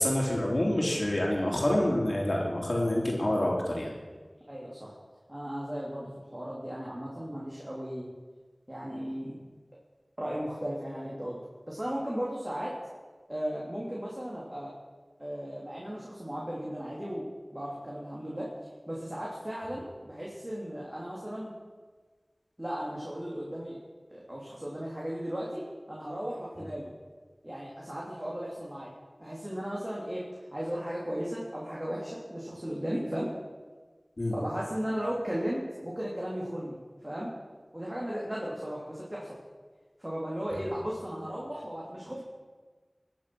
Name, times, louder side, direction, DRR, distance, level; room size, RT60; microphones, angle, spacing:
voice 1, 0.0-3.9 34.2-34.3, left 1 dB, 65° left, -2 dB, 3.1 m, -27 dB
voice 2, 4.5-5.0 5.3-8.1 8.7-9.4 10.2-11.4 11.7-12.8 13.3-14.8 15.2-18.5 18.9-21.5 22.6-23.8 24.1-26.9 27.4-28.9 29.2-33.3 34.3-36.8 37.0-37.3 37.7-39.4 40.0-42.2, equal, 30° right, -5 dB, 3.1 m, -36 dB
21.0 x 7.4 x 6.1 m, 1.4 s
wide cardioid pair, 40°, 0 cm